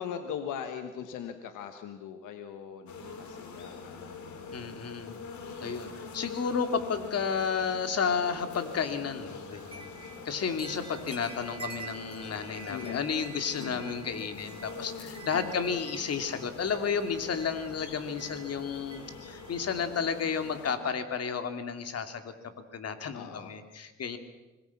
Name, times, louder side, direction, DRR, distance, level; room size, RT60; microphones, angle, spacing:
voice 1, 0.0-4.8 12.7-13.0 13.6-13.8 15.3-15.6 23.1-23.5, left 8 dB, 90° left, 7 dB, 1.4 m, -40 dB
sound 1, 2.9-20.8, left 4 dB, 70° left, 3.4 m, -44 dB
voice 2, 4.5-5.1 5.6-9.9 10.2-24.2, left 6 dB, 55° left, 8 dB, 2.5 m, -32 dB
sound 2, 9.5-19.9, right 5 dB, 20° right, 4.7 m, -49 dB
26.0 x 20.0 x 5.9 m, 1.1 s
cardioid pair, 90°, 30 cm